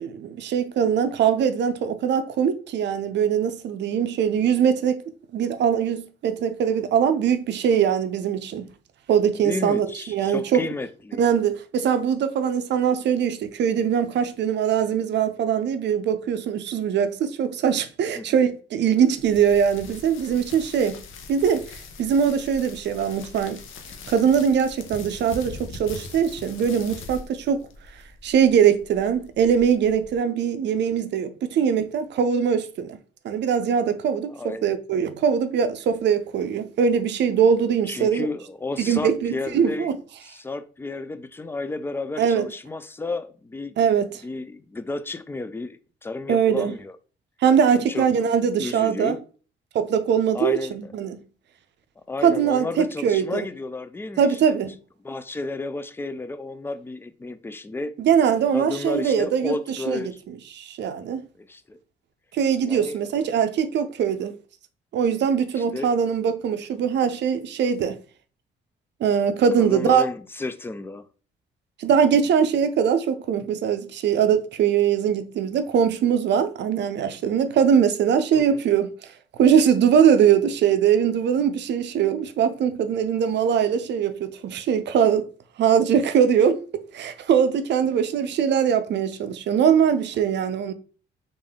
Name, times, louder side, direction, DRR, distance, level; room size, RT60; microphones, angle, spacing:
voice 1, 0.0-5.0 5.3-8.7 9.1-10.6 11.2-21.0 21.3-21.6 22.0-23.6 24.1-27.6 28.2-33.0 33.2-34.3 34.6-38.3 38.8-40.0 42.2-42.5 43.8-44.1 46.3-46.7 47.4-49.2 49.7-51.2 52.2-53.5 54.2-54.7 58.0-60.0 60.5-61.2 62.3-64.3 64.9-68.0 69.0-70.0 71.8-78.9 79.4-85.2 85.6-86.6 86.9-90.7, right 8 dB, 65° right, 0.5 m, -21 dB
voice 2, 9.3-11.2 18.1-18.3 34.3-34.7 37.8-39.9 40.2-43.9 44.2-47.0 47.7-48.1 48.5-49.2 50.3-50.9 52.1-54.4 55.0-57.9 58.5-60.2 61.4-61.8 62.6-63.0 65.6-65.9 69.6-71.1 78.3-78.6, left 3 dB, 10° left, 0.3 m, -32 dB
sound 1, 19.2-30.2, left 4 dB, 85° left, 0.6 m, -42 dB
3.5 x 2.5 x 3.5 m
cardioid pair, 90°, 20 cm